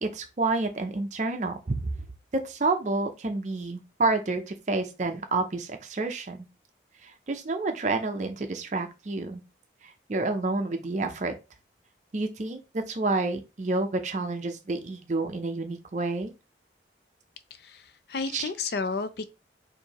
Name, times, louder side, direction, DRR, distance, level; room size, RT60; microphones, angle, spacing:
voice 1, 0.0-1.8 2.3-6.5 7.0-9.4 9.8-11.4 12.1-16.3 18.3-18.4, right 3 dB, 40° right, 0.5 m, -29 dB
voice 2, 17.5-19.3, left 4 dB, 60° left, 0.4 m, -32 dB
4.4 x 2.6 x 2.9 m
head